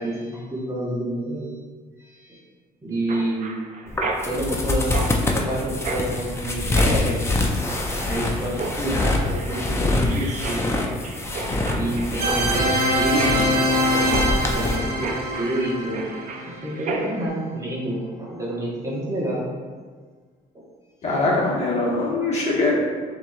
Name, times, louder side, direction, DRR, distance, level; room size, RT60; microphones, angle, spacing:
voice 1, 0.0-1.5 2.0-2.4 2.8-3.5 4.2-7.2 7.9-10.7 11.7-16.0 16.4-19.4 20.5-20.6, right 1 dB, 20° right, -5 dB, 1.1 m, -28 dB
Mechanisms, 3.1-17.3, right 3 dB, 50° right, 0.6 m, -34 dB
sound 1, 3.9-14.8, left 2 dB, 15° left, 0.6 m, -25 dB
sound 2, 12.2-16.8, equal, 70° right, 0.9 m, -24 dB
voice 2, 21.0-22.7, left 2 dB, 40° left, -5 dB, 1.3 m, -22 dB
6.8 x 3.0 x 2.4 m, 1.5 s
cardioid pair, 110°, 17 cm